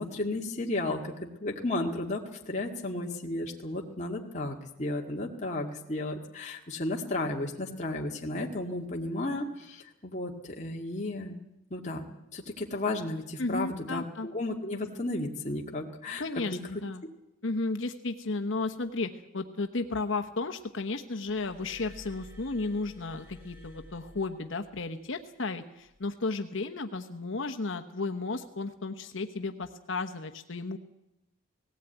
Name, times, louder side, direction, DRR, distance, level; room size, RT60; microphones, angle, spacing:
voice 1, 0.0-11.4 11.7-12.1 12.3-16.2 16.5-16.6, left 2 dB, 35° left, -1 dB, 2.0 m, -33 dB
voice 2, 13.4-14.3 16.2-17.0 17.4-30.8, left 3 dB, 65° left, 6 dB, 1.0 m, -33 dB
Glass, 21.3-24.9 25.9-26.1, left 2 dB, 10° right, 7.6 m, -51 dB
18.5 x 17.0 x 9.1 m, 0.88 s
head